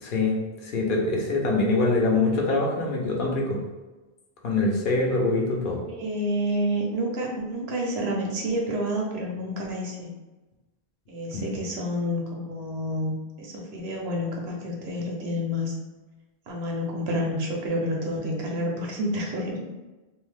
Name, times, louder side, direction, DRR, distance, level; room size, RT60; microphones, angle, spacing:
voice 1, 0.0-3.6 4.4-5.8 11.3-11.5, left 3 dB, 60° left, -1 dB, 0.7 m, -24 dB
voice 2, 5.8-10.1 11.1-15.7 16.5-19.5, equal, 90° right, -1 dB, 1.0 m, -29 dB
2.6 x 2.2 x 3.2 m, 1.1 s
omnidirectional pair, 1.0 m